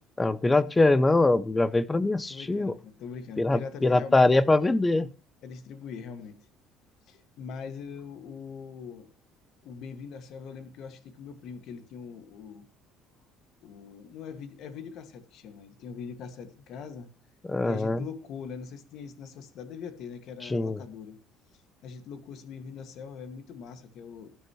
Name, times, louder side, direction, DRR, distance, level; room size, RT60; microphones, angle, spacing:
voice 1, 0.2-2.7 3.4-5.1 17.5-18.0 20.5-20.8, left 2 dB, 10° left, 0.6 m, -23 dB
voice 2, 2.3-4.5 5.4-6.4 7.1-9.1 9.6-12.7 13.6-17.1 17.6-21.2 21.8-24.4, left 6 dB, 55° left, 2.0 m, -42 dB
19.5 x 9.3 x 3.1 m
cardioid pair, 145°, 0 cm